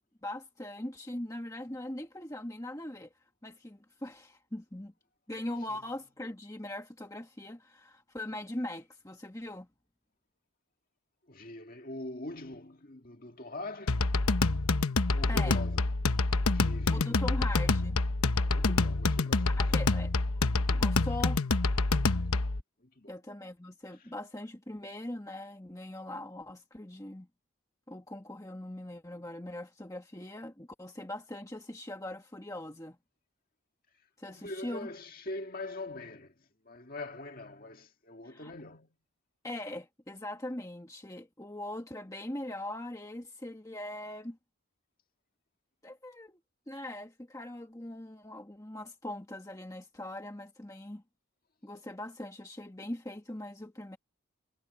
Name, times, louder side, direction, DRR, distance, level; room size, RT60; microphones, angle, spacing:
voice 1, 0.2-4.9 5.3-9.7 15.3-15.6 16.9-18.0 19.6-21.4 23.1-27.3 27.9-33.0 34.2-34.9 38.2-38.5 39.4-44.4 45.8-46.4 46.7-51.0 51.6-54.0, left 1 dB, 15° left, 1.4 m, -41 dB
voice 2, 11.3-14.2 15.1-15.8 16.5-17.3 18.4-19.6 22.8-23.2 23.9-24.1 34.3-39.0, left 2 dB, 40° left, 2.0 m, -43 dB
sound 1, 13.9-22.6, left 3 dB, 85° left, 1.0 m, -27 dB
head